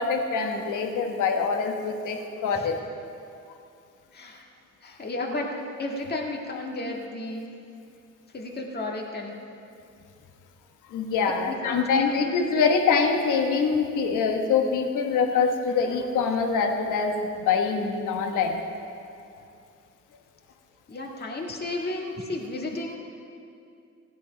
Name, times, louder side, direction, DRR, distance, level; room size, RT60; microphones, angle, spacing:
voice 1, 0.0-2.8 10.9-18.5, left 5 dB, 85° left, 4 dB, 1.3 m, -24 dB
voice 2, 4.1-4.5 4.8-7.5 8.3-9.3 11.2-12.0 20.9-23.0, left 2 dB, 35° left, 0 dB, 1.8 m, -33 dB
16.5 x 10.0 x 5.1 m, 2.5 s
cardioid pair, 90°, 30 cm